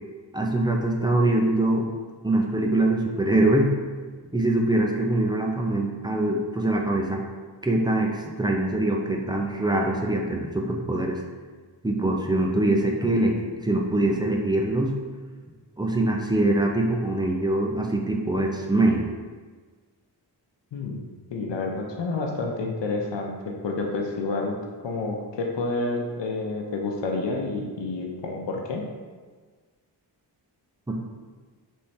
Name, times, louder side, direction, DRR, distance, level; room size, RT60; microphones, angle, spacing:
voice 1, 0.3-1.9 2.2-3.7 4.3-7.2 7.6-11.2 11.8-14.9 15.8-19.0 30.9-31.0, right 2 dB, 10° right, 0 dB, 0.3 m, -23 dB
voice 2, 21.3-28.8, left 3 dB, 85° left, 1 dB, 0.7 m, -29 dB
3.6 x 3.2 x 4.2 m, 1.5 s
wide cardioid pair, 155°, 42 cm